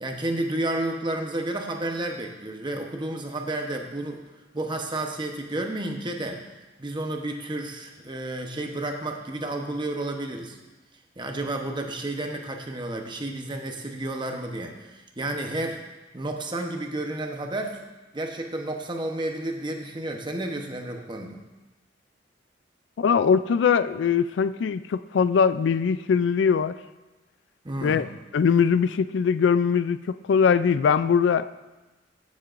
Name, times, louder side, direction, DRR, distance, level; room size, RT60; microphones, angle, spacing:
voice 1, 0.0-4.2 4.5-6.4 6.8-10.6 11.2-15.8 16.1-17.8 18.1-21.4 27.6-28.0, right 1 dB, 25° right, 3 dB, 0.9 m, -31 dB
voice 2, 23.0-26.8 27.8-28.1 28.3-31.5, left 6 dB, 80° left, 14 dB, 0.3 m, -21 dB
15.0 x 7.4 x 2.5 m, 1.1 s
head